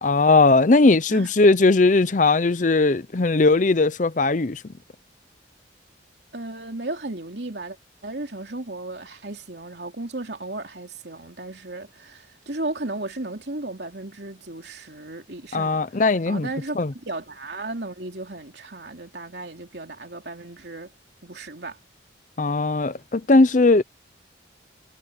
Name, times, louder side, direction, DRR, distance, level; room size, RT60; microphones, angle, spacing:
voice 1, 0.0-4.6 15.5-16.5 16.8-16.9 22.4-23.8, left 3 dB, 40° left, 0.6 m, -18 dB
voice 2, 6.3-7.8 8.0-20.9 21.2-21.8, right 2 dB, 65° right, 3.2 m, -35 dB
head